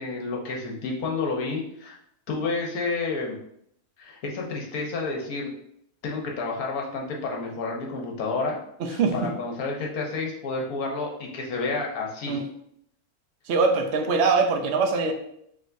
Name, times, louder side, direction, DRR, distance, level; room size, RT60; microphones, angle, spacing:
voice 1, 0.0-2.0 2.3-3.4 4.0-5.5 6.0-8.6 8.9-12.4, left 3 dB, 70° left, -1 dB, 1.3 m, -30 dB
voice 2, 8.8-9.3 12.3-12.4 13.5-15.1, right 4 dB, 65° right, 4 dB, 0.7 m, -23 dB
4.9 x 3.1 x 2.6 m, 0.72 s
omnidirectional pair, 1.6 m